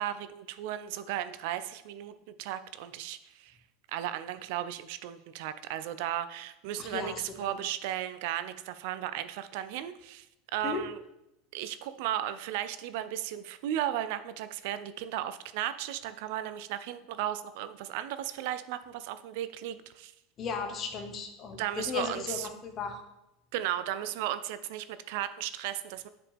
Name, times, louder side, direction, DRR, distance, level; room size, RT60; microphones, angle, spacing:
voice 1, 0.0-2.1 2.4-3.5 3.9-10.3 10.5-11.0 11.5-20.1 21.6-22.5 23.5-26.1, right 12 dB, 65° right, 13 dB, 0.4 m, -35 dB
voice 2, 6.8-7.5 10.6-10.8 20.4-23.0, left 6 dB, 40° left, 5 dB, 1.1 m, -36 dB
6.8 x 4.9 x 3.5 m, 0.88 s
hypercardioid pair, 85°, 0 cm